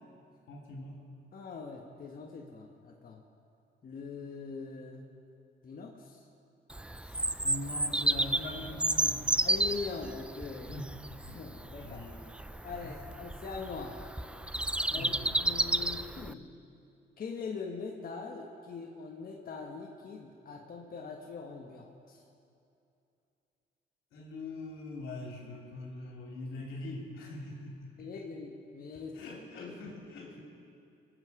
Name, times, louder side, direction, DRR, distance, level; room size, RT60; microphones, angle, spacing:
voice 1, 0.5-1.0 7.0-9.5 10.6-11.0 11.2-11.4 11.8-12.2 12.8-13.0 14.9-15.2 24.1-28.1 28.9-30.4, left 2 dB, 85° left, -1 dB, 3.1 m, -43 dB
voice 2, 1.3-3.2 3.8-5.1 5.6-6.2 9.4-10.7 11.3-12.0 12.6-14.0 14.9-15.1 15.4-16.5 17.2-22.2 28.0-29.1 29.5-29.7, left 4 dB, 45° left, 0 dB, 1.4 m, -42 dB
Bird vocalization bird call bird song, 6.7-16.3, right 1 dB, 5° right, 0.3 m, -32 dB
24.5 x 8.2 x 4.9 m, 2.6 s
cardioid pair, 90°, 20 cm